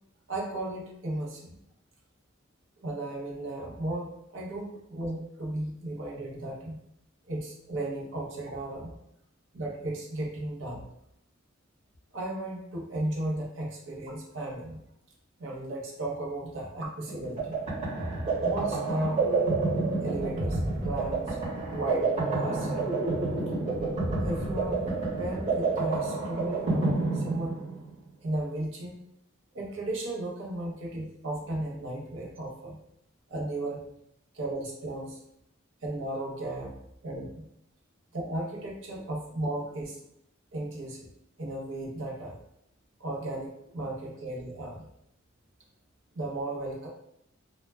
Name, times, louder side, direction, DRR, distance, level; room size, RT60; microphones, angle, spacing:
voice 1, 0.3-1.5 2.8-6.8 7.3-9.0 9.5-10.8 12.1-14.8 15.4-17.6 18.4-19.3 20.0-21.4 21.7-23.0 24.2-27.5 28.2-29.0 29.5-32.8 33.3-33.8 34.3-35.1 35.8-36.7 37.0-37.5 38.1-40.0 40.5-41.1 41.4-42.4 43.0-44.9 46.1-46.9, right 1 dB, 65° right, -2 dB, 0.7 m, -35 dB
sound 1, 17.1-27.9, right 3 dB, 35° right, 1.0 m, -29 dB
2.2 x 2.1 x 3.2 m, 0.76 s
head